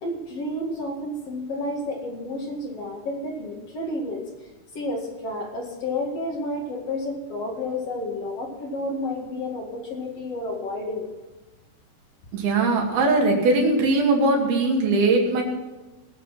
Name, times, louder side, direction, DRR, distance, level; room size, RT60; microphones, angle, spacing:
voice 1, 0.0-4.2 4.7-11.1, left 1 dB, 50° left, 0 dB, 2.6 m, -30 dB
voice 2, 12.3-15.4, right 2 dB, 90° right, 0 dB, 4.2 m, -20 dB
19.5 x 7.0 x 5.8 m, 1.1 s
omnidirectional pair, 4.3 m